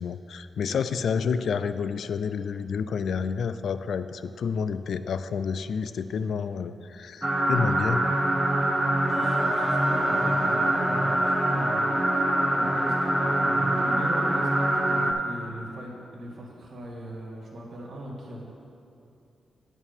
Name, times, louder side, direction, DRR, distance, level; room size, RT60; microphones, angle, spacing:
voice 1, 0.0-8.0, left 6 dB, 70° left, 12 dB, 0.3 m, -29 dB
voice 2, 0.7-1.3 9.2-12.0 12.5-18.4, right 1 dB, 55° right, -2 dB, 1.8 m, -40 dB
sound 1, 7.2-15.1, right 1 dB, 10° right, 0.7 m, -24 dB
sound 2, 9.1-13.9, equal, 15° left, 1.9 m, -37 dB
8.8 x 4.5 x 7.2 m, 2.7 s
wide cardioid pair, 120°, 0 cm